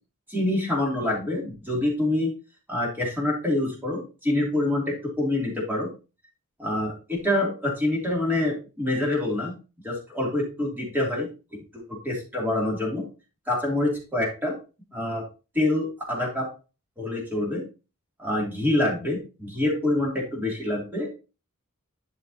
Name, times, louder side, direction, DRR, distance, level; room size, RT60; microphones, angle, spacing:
voice 1, 0.3-2.3 2.7-5.9 6.6-9.5 9.8-11.3 11.7-13.0 13.5-14.5 14.9-15.2 15.5-16.5 17.0-17.6 18.2-21.1, left 1 dB, 10° right, -3 dB, 2.9 m, -26 dB
11.5 x 5.6 x 2.9 m, 0.32 s
head